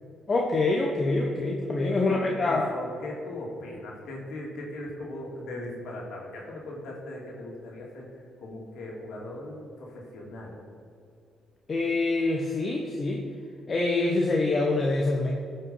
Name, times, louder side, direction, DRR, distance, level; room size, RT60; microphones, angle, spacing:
voice 1, 0.3-2.7 11.7-13.2 13.7-15.3, left 2 dB, 40° left, 0 dB, 1.1 m, -25 dB
voice 2, 1.9-8.1 8.4-10.5, left 1 dB, 75° left, -2 dB, 2.6 m, -38 dB
14.5 x 5.8 x 5.6 m, 2.3 s
cardioid pair, 90°, 0 cm